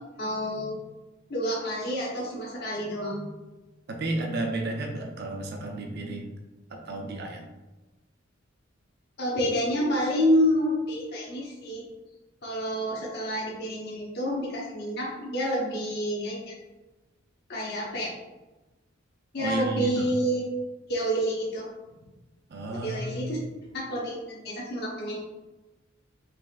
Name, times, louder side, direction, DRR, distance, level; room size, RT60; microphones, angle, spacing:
voice 1, 0.2-0.8 1.3-3.2 9.2-11.8 12.4-16.5 17.5-18.1 19.3-20.4 20.9-21.7 22.7-23.4 23.7-25.2, equal, 55° left, -4 dB, 1.0 m, -28 dB
voice 2, 3.9-6.3 6.7-7.4 19.4-20.1 22.5-23.4, right 2 dB, 55° right, 2 dB, 0.6 m, -32 dB
5.0 x 3.1 x 2.4 m, 1.1 s
head